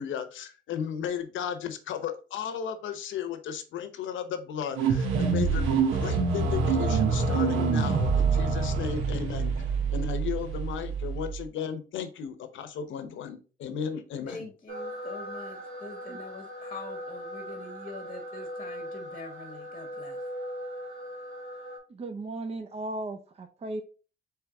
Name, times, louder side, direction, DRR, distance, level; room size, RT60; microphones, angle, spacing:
voice 1, 0.0-9.7 9.9-14.5, left 8 dB, 75° left, 0.8 m, -35 dB
sound 1, 4.7-11.4, right 5 dB, 90° right, 1.0 m, -26 dB
voice 2, 14.3-20.2, left 3 dB, 30° left, 1.0 m, -44 dB
sound 2, 14.7-21.8, equal, 70° right, 2.3 m, -39 dB
voice 3, 21.9-23.8, right 2 dB, 30° right, 0.6 m, -36 dB
4.7 x 3.2 x 3.5 m
cardioid pair, 90°, 20 cm